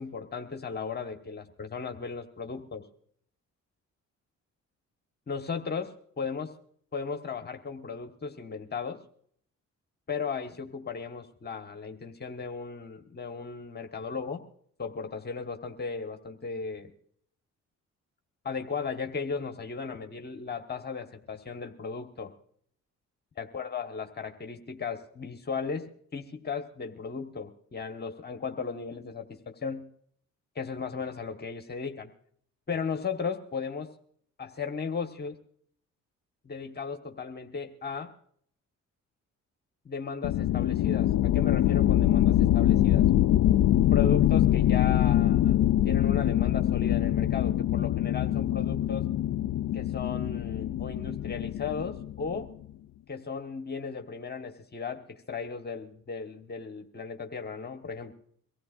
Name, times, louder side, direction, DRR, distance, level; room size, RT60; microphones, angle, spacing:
voice 1, 0.0-2.8 5.3-6.5 6.9-9.0 10.1-14.4 14.8-16.9 18.4-22.3 23.4-29.9 30.5-32.1 32.7-33.9 34.4-35.3 36.4-38.1 39.8-43.1 43.9-45.6 45.8-49.1 49.7-52.5 53.1-58.1, left 5 dB, 35° left, 4 dB, 1.4 m, -36 dB
sound 1, 40.2-52.5, left 12 dB, 65° left, 0.5 m, -24 dB
23.5 x 15.5 x 2.5 m, 0.63 s
cardioid pair, 90°, 30 cm